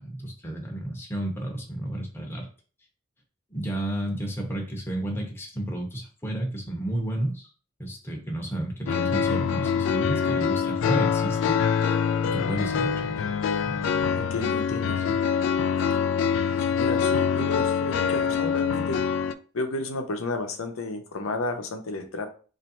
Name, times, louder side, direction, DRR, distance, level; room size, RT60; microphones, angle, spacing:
voice 1, 0.0-2.5 3.5-7.5 7.8-11.4 11.7-11.8 12.2-13.3 13.6-13.9 14.9-15.2, right 1 dB, 10° left, 0 dB, 0.8 m, -32 dB
sound 1, 8.9-19.3, left 7 dB, 65° left, 0.3 m, -25 dB
voice 2, 14.2-15.0 16.5-19.0 19.5-22.3, left 2 dB, 90° left, 5 dB, 0.7 m, -32 dB
3.1 x 2.6 x 4.1 m, 0.39 s
head